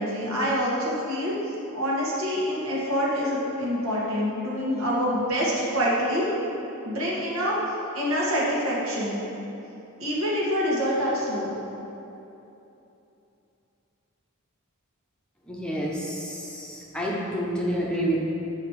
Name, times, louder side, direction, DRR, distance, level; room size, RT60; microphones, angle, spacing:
voice 1, 0.0-1.3 1.7-6.3 6.9-7.6 7.9-9.2 10.0-11.6, equal, 70° right, -6 dB, 1.8 m, -26 dB
voice 2, 15.5-18.2, right 1 dB, 5° left, -5 dB, 0.9 m, -29 dB
8.2 x 5.1 x 4.8 m, 2.9 s
head